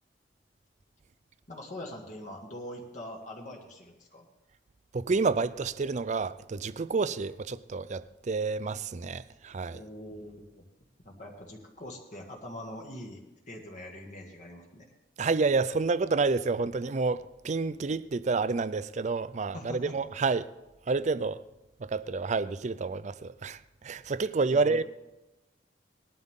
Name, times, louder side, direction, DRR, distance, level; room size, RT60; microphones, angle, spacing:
voice 1, 1.5-4.2 9.7-10.6 11.0-14.9 19.5-19.9 24.5-24.8, left 1 dB, 45° left, 1.8 m, -43 dB
voice 2, 4.9-9.8 15.2-20.5 20.9-21.4 21.8-24.8, right 4 dB, 40° right, 0.4 m, -29 dB
19.5 x 12.0 x 3.7 m
head